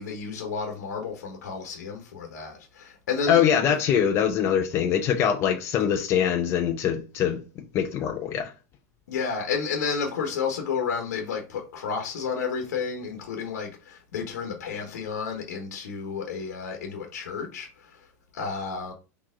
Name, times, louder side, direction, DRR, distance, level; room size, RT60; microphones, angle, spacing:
voice 1, 0.0-3.4 3.7-3.8 9.1-18.0 18.3-18.9, left 5 dB, 90° left, 1.1 m, -31 dB
voice 2, 3.3-7.4 7.7-8.5, left 9 dB, 30° left, 0.5 m, -23 dB
4.3 x 3.0 x 3.6 m
supercardioid pair, 145°, 9 cm